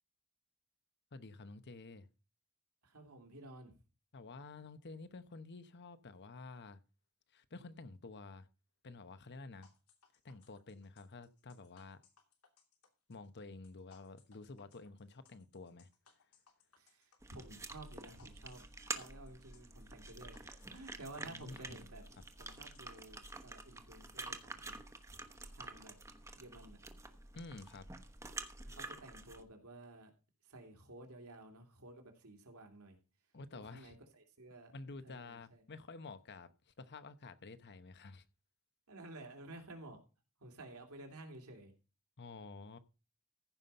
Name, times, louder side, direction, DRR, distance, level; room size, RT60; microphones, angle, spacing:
voice 1, 1.1-2.1 4.1-6.8 7.3-8.5 8.8-9.7 10.2-12.0 13.1-15.9 21.2-21.8 27.3-27.9 33.3-34.0 34.7-38.2 42.2-42.8, left 3 dB, 50° left, 0.9 m, -51 dB
voice 2, 2.8-3.7 16.8-18.6 18.9-22.0 22.4-24.8 25.5-25.9 26.3-26.8 28.6-30.1 30.4-33.0 33.5-34.7 35.0-35.6 38.9-40.0 40.4-41.7, right 2 dB, 75° right, 2.9 m, -53 dB
sound 1, 9.6-23.3, left 6 dB, 85° left, 2.9 m, -68 dB
sound 2, 17.2-29.4, right 3 dB, 15° right, 1.1 m, -48 dB
15.0 x 5.7 x 5.5 m
head